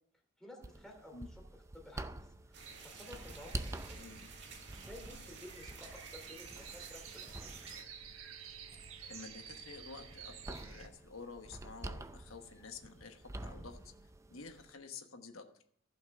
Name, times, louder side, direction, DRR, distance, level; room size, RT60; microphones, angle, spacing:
voice 1, 0.4-1.4 1.7-4.0 4.7-7.6, left 1 dB, 5° left, 0 dB, 2.7 m, -54 dB
sound 1, 0.6-14.7, right 1 dB, 15° right, 0.5 m, -48 dB
sound 2, 2.5-7.8, right 5 dB, 55° right, 2.1 m, -54 dB
sound 3, 2.6-10.9, right 7 dB, 85° right, 1.4 m, -52 dB
voice 2, 3.9-4.3 9.1-13.9 14.3-15.4, left 4 dB, 80° left, 5 dB, 1.2 m, -50 dB
15.0 x 5.9 x 6.5 m, 0.65 s
head